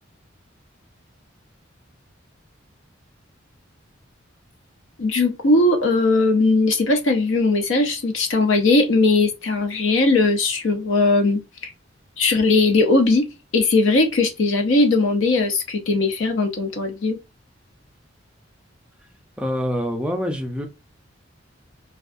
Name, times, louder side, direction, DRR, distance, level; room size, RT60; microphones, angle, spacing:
voice 1, 5.0-11.7 12.2-13.3 13.5-17.2, left 3 dB, 80° left, 0.6 m, -19 dB
voice 2, 19.4-20.7, equal, 5° right, 0.4 m, -25 dB
2.3 x 2.3 x 2.5 m
head